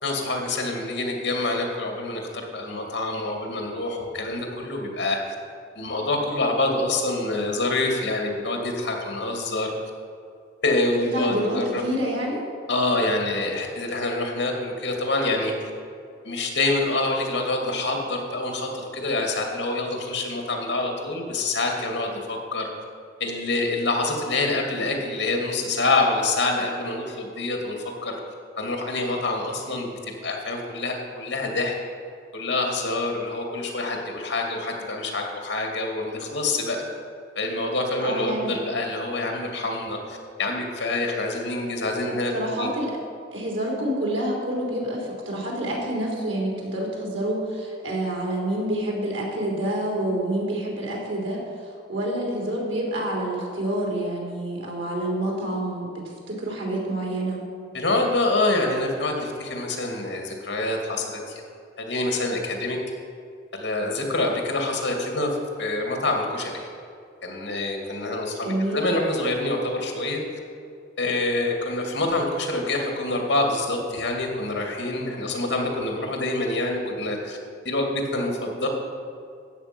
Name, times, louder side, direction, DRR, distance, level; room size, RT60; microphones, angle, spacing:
voice 1, 0.0-5.2 5.8-9.7 10.6-11.8 12.7-15.5 16.2-22.7 23.2-28.1 28.6-29.9 30.2-31.7 32.3-36.8 37.4-42.7 57.7-61.4 61.8-62.8 63.5-65.3 65.6-66.7 67.2-70.2 71.0-77.4 77.6-78.7, left 2 dB, 70° left, 1 dB, 2.4 m, -26 dB
voice 2, 11.0-12.4 38.0-38.6 42.1-42.9 43.3-51.4 51.9-57.4 68.4-68.8, right 1 dB, 85° right, -2 dB, 3.5 m, -28 dB
13.0 x 8.8 x 6.1 m, 2.3 s
head